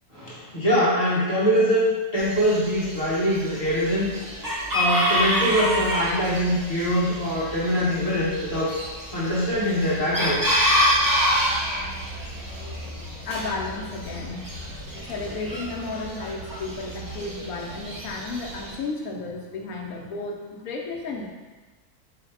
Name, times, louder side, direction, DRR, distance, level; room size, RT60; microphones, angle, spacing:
voice 1, 0.1-4.1 4.7-8.7 9.1-10.6, equal, 30° left, -9 dB, 1.1 m, -23 dB
Chicken rooster, 2.2-18.8, equal, 25° right, 0.5 m, -28 dB
voice 2, 13.2-14.5 15.0-21.2, left 3 dB, 75° left, 0 dB, 1.1 m, -33 dB
4.8 x 2.1 x 4.6 m, 1.3 s
omnidirectional pair, 1.5 m